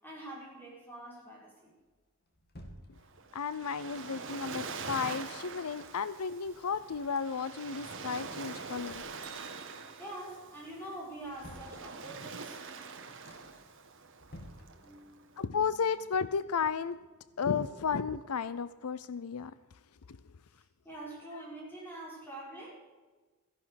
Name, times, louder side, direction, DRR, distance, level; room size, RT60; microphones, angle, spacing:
voice 1, 0.0-1.7 10.0-12.6 14.7-15.5 20.8-22.7, right 1 dB, 10° left, -4 dB, 5.8 m, -45 dB
sound 1, 1.8-3.5 4.3-5.7 6.0-6.1 6.4-8.0 8.4-9.6 9.9-10.4 10.9-12.3 12.8-12.9 13.2-13.7 14.1-15.3 15.6-17.5 17.8-17.9, equal, 45° left, 2.5 m, -56 dB
Waves surf, 3.0-15.4, right 4 dB, 60° right, 1.6 m, -44 dB
voice 2, 3.3-9.1 15.4-17.0 17.4-19.5 20.1-20.2, left 6 dB, 80° left, 16 dB, 0.5 m, -33 dB
Bell, 9.2-11.3, right 6 dB, 15° right, 1.8 m, -57 dB
15.0 x 11.0 x 6.5 m, 1.3 s
head